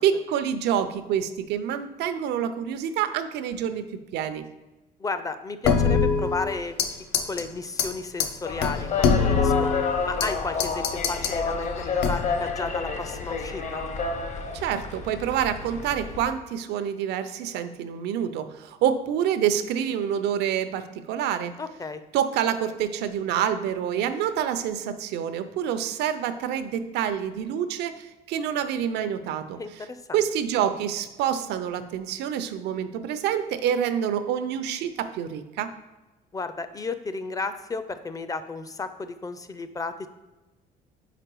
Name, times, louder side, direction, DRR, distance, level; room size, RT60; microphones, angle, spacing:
voice 1, 0.0-3.8 4.1-4.5 14.5-21.5 22.1-29.6 30.1-35.7, right 9 dB, 80° right, 11 dB, 0.6 m, -27 dB
voice 2, 5.0-6.8 7.3-9.7 10.1-13.8 21.6-22.0 29.6-30.2 36.3-40.1, left 4 dB, 20° left, 11 dB, 0.5 m, -33 dB
sound 1, 5.6-6.9 7.1-7.4 7.8-7.9 8.2-8.3 8.6-10.3 10.6-11.4 12.0-12.4, left 5 dB, 75° left, 0.7 m, -23 dB
sound 2, 8.4-16.3, left 5 dB, 45° left, 0.8 m, -30 dB
5.0 x 4.6 x 4.6 m, 1.1 s
cardioid pair, 110°, 17 cm